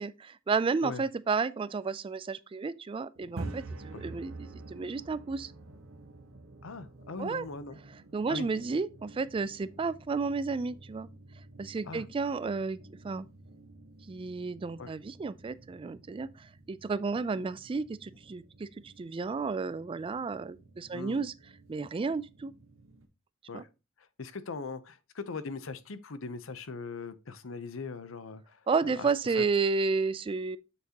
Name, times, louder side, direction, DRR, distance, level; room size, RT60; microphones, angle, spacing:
voice 1, 0.0-5.5 7.2-7.5 8.1-11.1 11.6-12.8 13.0-13.3 14.1-21.3 21.7-22.5 23.5-23.6 28.7-30.6, right 4 dB, 25° right, 0.3 m, -32 dB
sound 1, 3.2-23.1, right 2 dB, 80° right, 1.1 m, -49 dB
voice 2, 6.6-7.8 8.3-8.5 11.8-12.0 14.8-14.9 20.9-21.2 23.5-23.7 24.2-29.4, left 4 dB, 70° left, 0.7 m, -40 dB
7.2 x 6.5 x 2.9 m
head